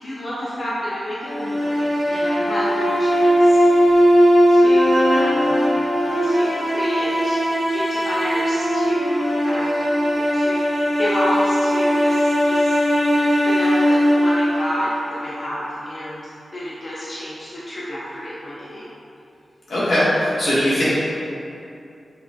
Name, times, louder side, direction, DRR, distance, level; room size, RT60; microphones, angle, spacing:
voice 1, 0.0-3.6 4.5-5.6 6.2-9.9 10.2-10.6 11.0-12.8 13.1-16.2 16.5-18.9, equal, 50° left, -8 dB, 0.6 m, -29 dB
sound 1, 1.3-15.4, equal, 15° left, 1.3 m, -18 dB
voice 2, 19.7-20.9, left 1 dB, 85° left, -11 dB, 1.5 m, -19 dB
5.8 x 3.1 x 2.2 m, 2.7 s
wide cardioid pair, 90°, 0 cm